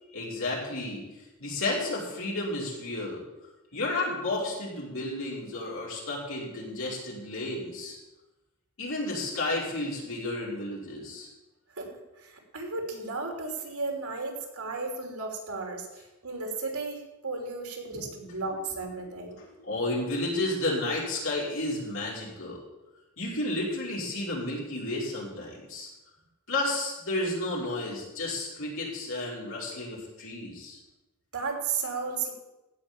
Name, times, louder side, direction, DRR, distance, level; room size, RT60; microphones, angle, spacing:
voice 1, 0.1-1.0 1.4-3.2 3.7-8.0 8.8-11.3 17.9-18.0 19.1-22.6 23.2-25.9 26.5-30.8, left 2 dB, 65° left, -5 dB, 5.1 m, -32 dB
voice 2, 11.8-19.4 31.3-32.3, right 4 dB, 90° right, 2 dB, 3.1 m, -34 dB
16.0 x 5.7 x 8.8 m, 1.0 s
head